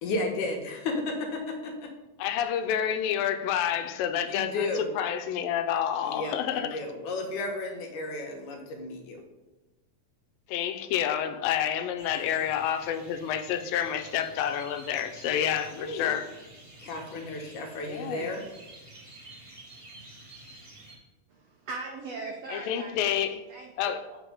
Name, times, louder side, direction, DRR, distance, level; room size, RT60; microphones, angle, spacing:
voice 1, 0.0-1.9 4.3-4.9 6.0-9.2 15.7-16.2 16.8-18.4, left 2 dB, 70° left, 2 dB, 2.4 m, -33 dB
voice 2, 2.2-6.8 10.5-16.3 17.9-18.3 22.5-23.4 23.8-24.0, left 9 dB, 85° left, 9 dB, 2.3 m, -29 dB
sound 1, 12.0-21.0, right 2 dB, 25° right, 2.5 m, -50 dB
voice 3, 21.3-23.7 24.1-24.2, right 3 dB, 85° right, 1 dB, 1.4 m, -40 dB
7.7 x 5.2 x 4.9 m, 1.1 s
omnidirectional pair, 4.0 m